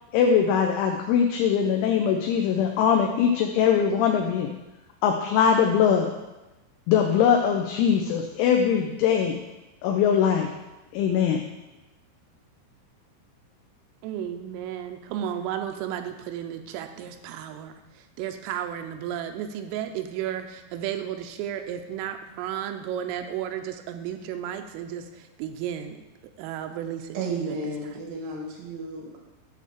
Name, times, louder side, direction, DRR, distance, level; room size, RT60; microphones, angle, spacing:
voice 1, 0.1-4.5 5.0-6.1 6.9-9.3 9.8-10.5 10.9-11.4, left 7 dB, 80° left, 3 dB, 2.9 m, -21 dB
voice 2, 14.0-26.0 26.4-27.7, right 10 dB, 85° right, 7 dB, 3.3 m, -33 dB
voice 3, 27.1-29.2, right 2 dB, 70° right, -1 dB, 1.7 m, -33 dB
10.0 x 4.2 x 7.3 m, 1.1 s
omnidirectional pair, 5.9 m